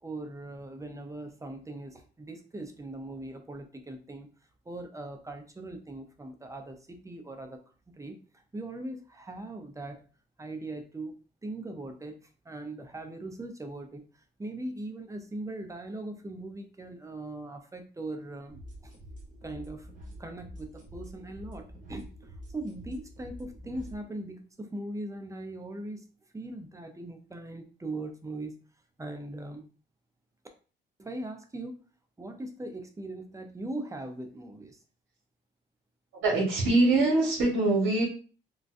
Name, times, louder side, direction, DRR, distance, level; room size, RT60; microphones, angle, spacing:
voice 1, 0.0-4.3 4.7-7.6 7.9-10.0 10.4-18.9 19.4-19.9 20.2-26.1 26.3-28.6 29.0-29.7 31.0-31.8 32.2-34.8, right 2 dB, 15° right, 5 dB, 0.6 m, -40 dB
sound 1, 18.5-24.0, equal, 40° right, 1.1 m, -46 dB
voice 2, 36.2-38.0, right 2 dB, 80° right, -4 dB, 1.3 m, -23 dB
3.8 x 2.2 x 2.5 m, 0.37 s
cardioid pair, 90°, 20 cm